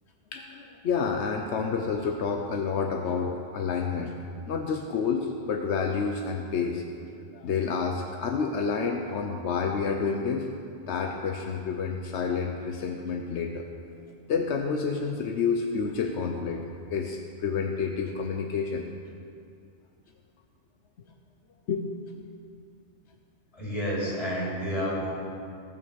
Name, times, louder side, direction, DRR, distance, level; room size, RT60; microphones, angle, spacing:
voice 1, 0.3-4.2 4.5-6.8 7.3-10.5 10.9-13.6 14.3-18.8 21.7-21.9, left 5 dB, 85° left, 3 dB, 1.1 m, -29 dB
voice 2, 23.5-25.1, equal, 30° left, -7 dB, 4.0 m, -30 dB
17.0 x 5.8 x 7.1 m, 2.5 s
omnidirectional pair, 1.1 m